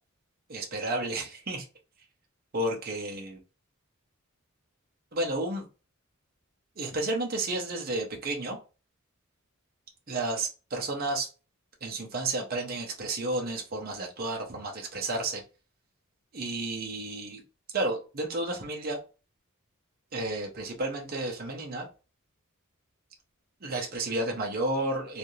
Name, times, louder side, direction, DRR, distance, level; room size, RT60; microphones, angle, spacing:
voice 1, 0.5-1.6 2.5-3.4 5.1-5.7 6.8-8.6 10.1-11.3 11.8-15.4 16.3-17.4 17.7-19.0 20.1-21.9 23.6-25.2, right 2 dB, 45° right, 0.7 m, -32 dB
3.2 x 2.4 x 2.7 m
head